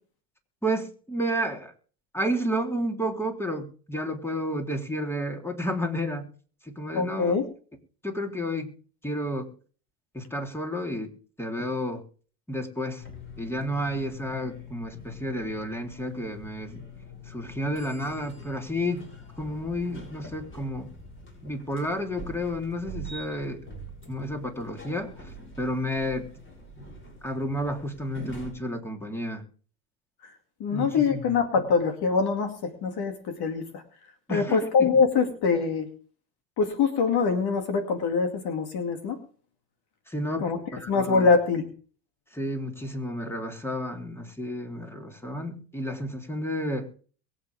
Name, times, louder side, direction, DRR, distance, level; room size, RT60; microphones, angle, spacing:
voice 1, 0.6-1.7 2.1-6.3 6.6-7.3 8.0-8.7 9.0-9.5 10.1-11.1 11.4-12.0 12.5-13.0 13.4-16.8 17.3-19.1 19.4-20.9 21.4-23.6 24.1-25.1 25.6-26.3 27.2-29.4 30.7-31.2 34.3-34.9 40.1-41.3 42.3-46.9, equal, 5° left, 3 dB, 3.3 m, -31 dB
voice 2, 6.9-7.5 30.6-33.8 34.3-35.9 36.6-39.2 40.4-40.6 40.9-41.7, left 5 dB, 50° left, 6 dB, 2.4 m, -24 dB
sound 1, 13.0-28.5, left 1 dB, 25° left, 6.9 m, -44 dB
23.0 x 8.5 x 3.5 m, 0.41 s
hypercardioid pair, 90°, 50 cm